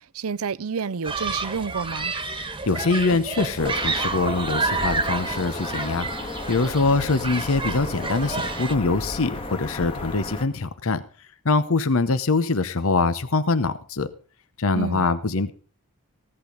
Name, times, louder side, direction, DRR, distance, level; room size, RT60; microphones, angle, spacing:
voice 1, 0.1-2.1 14.8-15.1, right 5 dB, 70° right, 0.6 m, -29 dB
Human group actions, 1.0-8.7, right 3 dB, 20° right, 1.4 m, -29 dB
voice 2, 2.3-6.1 6.5-11.0 11.4-14.1 14.6-15.5, left 3 dB, 65° left, 0.9 m, -23 dB
sound 1, 3.6-10.5, left 2 dB, 25° left, 1.6 m, -34 dB
16.0 x 11.0 x 5.1 m
head